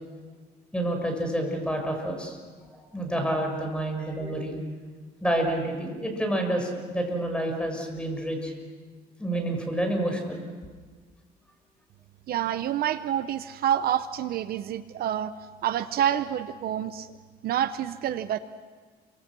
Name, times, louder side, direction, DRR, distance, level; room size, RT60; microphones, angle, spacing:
voice 1, 0.7-2.4 2.7-4.6 5.2-8.5 9.2-10.4, right 1 dB, 5° left, 3 dB, 6.4 m, -28 dB
voice 2, 12.3-15.3 15.6-17.1 17.4-18.4, right 10 dB, 65° right, 12 dB, 0.9 m, -27 dB
29.0 x 25.0 x 6.3 m, 1.5 s
cardioid pair, 110°, 17 cm